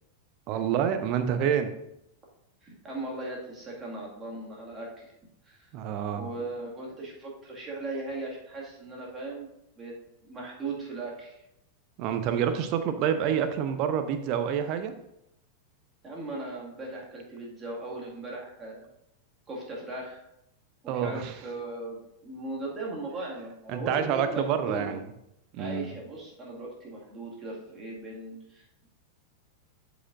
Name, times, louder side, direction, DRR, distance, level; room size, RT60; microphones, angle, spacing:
voice 1, 0.5-1.7 5.7-6.3 12.0-14.9 20.9-21.3 23.7-25.0 25.5-25.9, right 8 dB, 40° right, 9 dB, 0.7 m, -27 dB
voice 2, 2.6-5.1 5.4-5.7 6.2-9.5 9.8-10.0 10.2-11.4 16.0-18.9 19.5-20.2 20.8-25.0 25.6-28.9, right 2 dB, 20° right, -3 dB, 2.1 m, -38 dB
12.5 x 5.0 x 2.6 m, 0.81 s
figure-of-eight pair, 90°, 0 cm